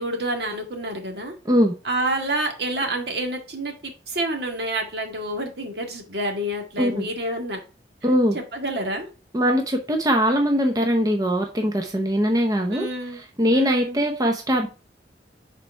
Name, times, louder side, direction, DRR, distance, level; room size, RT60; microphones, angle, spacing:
voice 1, 0.0-1.3 1.8-7.6 8.3-9.1 12.7-13.2 13.5-14.0, right 1 dB, 65° right, 1.8 m, -28 dB
voice 2, 8.0-8.4 9.3-14.7, equal, 20° right, 0.7 m, -21 dB
6.6 x 4.6 x 4.5 m
head